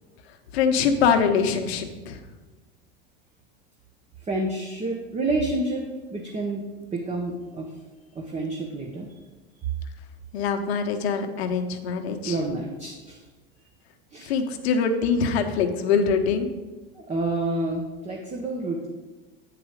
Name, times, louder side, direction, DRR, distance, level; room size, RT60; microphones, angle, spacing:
voice 1, 0.5-2.2 10.3-12.4 14.2-16.5, left 6 dB, 80° left, 6 dB, 1.0 m, -23 dB
voice 2, 4.2-6.6 6.9-7.7 8.1-9.1 12.2-13.2 14.1-14.3 16.9-18.9, right 2 dB, 20° right, 0 dB, 1.0 m, -29 dB
8.6 x 4.9 x 5.1 m, 1.2 s
supercardioid pair, 110°, 31 cm